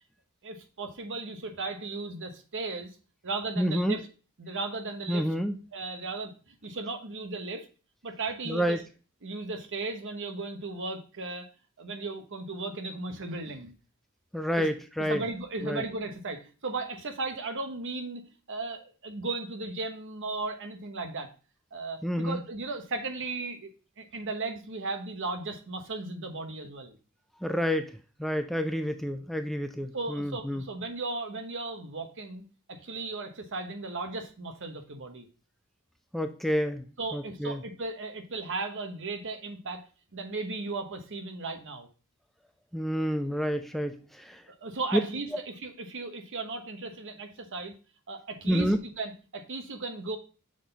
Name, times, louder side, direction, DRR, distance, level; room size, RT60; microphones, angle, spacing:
voice 1, 0.4-2.9 3.2-4.1 4.4-5.3 5.7-7.7 8.0-8.8 9.2-11.5 11.8-13.7 14.6-14.7 15.1-18.2 18.5-21.3 21.7-23.7 24.0-27.0 29.9-32.4 32.7-35.3 37.0-39.8 40.1-41.9 44.5-47.7 48.1-50.2, right 3 dB, 60° right, 6 dB, 1.0 m, -36 dB
voice 2, 3.6-4.0 5.1-5.6 8.5-8.8 14.3-15.2 15.6-15.8 22.0-22.4 27.4-30.6 36.1-37.6 42.7-44.4 44.9-45.0 48.5-48.8, equal, ahead, 8 dB, 0.3 m, -29 dB
6.4 x 3.9 x 3.9 m, 0.35 s
head